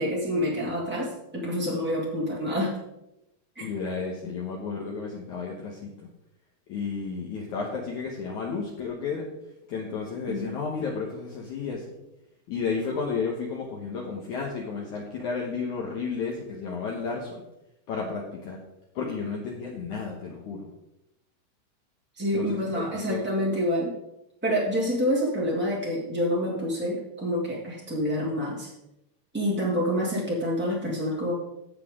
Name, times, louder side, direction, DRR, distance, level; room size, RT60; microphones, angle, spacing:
voice 1, 0.0-2.8 3.5-3.6 10.3-10.5 22.2-23.9 24.4-28.7 29.3-31.3, equal, 5° right, -5 dB, 0.8 m, -27 dB
voice 2, 3.6-6.1 6.7-9.3 9.7-12.0 12.5-17.4 17.9-18.6 19.0-20.7 22.3-23.2, left 5 dB, 65° left, -1 dB, 2.1 m, -32 dB
16.5 x 5.8 x 3.7 m, 0.89 s
omnidirectional pair, 4.6 m